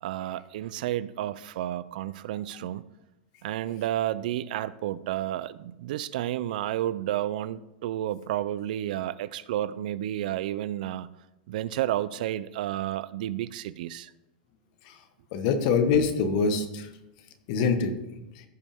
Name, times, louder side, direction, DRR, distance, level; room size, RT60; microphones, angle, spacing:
voice 1, 0.0-2.8 3.4-11.1 11.5-14.1, right 13 dB, 65° right, 17 dB, 0.4 m, -31 dB
voice 2, 15.3-16.9 17.5-17.9, left 5 dB, 55° left, 9 dB, 1.2 m, -24 dB
15.0 x 5.2 x 3.6 m, 0.92 s
supercardioid pair, 135°, 5 cm